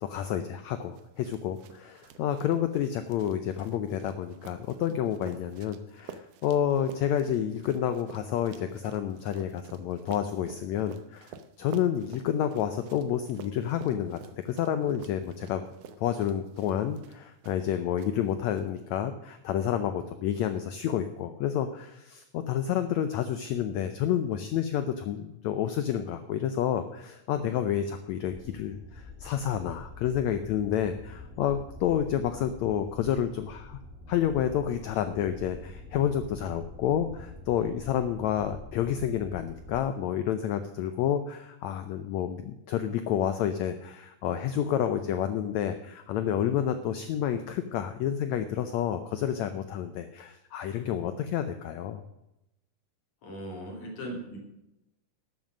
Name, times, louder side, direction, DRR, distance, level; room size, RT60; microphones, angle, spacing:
voice 1, 0.0-15.7 16.0-33.8 34.1-52.0, left 10 dB, 80° left, 9 dB, 1.6 m, -29 dB
sound 1, 0.9-17.7 18.0-18.6, right 6 dB, 85° right, 1.4 m, -50 dB
sound 2, 28.3-39.8, left 2 dB, 5° right, 1.0 m, -46 dB
voice 2, 53.2-54.4, equal, 60° left, 0 dB, 4.2 m, -38 dB
12.5 x 7.8 x 6.3 m, 0.88 s
omnidirectional pair, 4.0 m